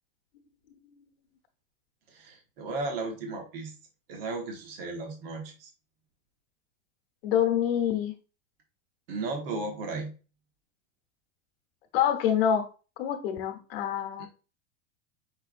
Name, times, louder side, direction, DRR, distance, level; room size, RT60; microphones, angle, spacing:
voice 1, 2.1-3.8 4.1-5.7 9.1-10.1 14.2-14.3, right 3 dB, 45° right, 3 dB, 1.1 m, -35 dB
voice 2, 7.2-8.1 11.9-12.7 13.0-14.3, left 9 dB, 45° left, 5 dB, 1.0 m, -26 dB
5.6 x 3.8 x 2.5 m, 0.33 s
supercardioid pair, 175°, 40 cm